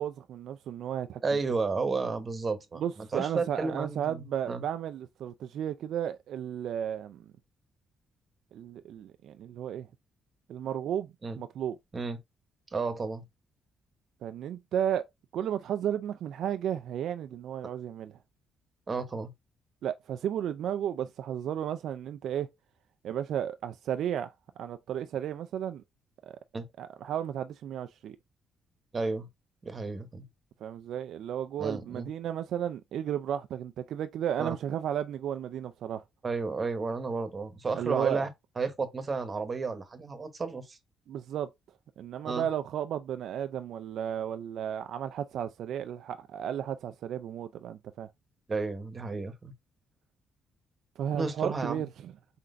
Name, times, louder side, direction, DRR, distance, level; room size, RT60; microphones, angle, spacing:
voice 1, 0.0-1.2 2.8-7.3 8.5-9.9 10.5-11.8 14.2-15.0 15.3-18.1 19.8-22.5 23.0-24.3 24.6-25.8 26.2-26.4 26.8-28.2 30.6-36.0 37.7-38.2 41.1-41.5 42.0-48.1 51.0-52.1, right 10 dB, 75° right, 0.4 m, -33 dB
voice 2, 1.2-4.6 11.2-11.4 11.9-12.2 12.7-13.2 18.9-19.3 26.5-26.7 28.9-29.3 29.6-30.2 31.6-32.1 34.4-34.5 36.2-38.3 38.6-40.8 42.2-42.5 48.5-49.5 51.1-51.8, right 4 dB, 35° right, 1.1 m, -32 dB
4.4 x 3.8 x 2.5 m
cardioid pair, 90°, 0 cm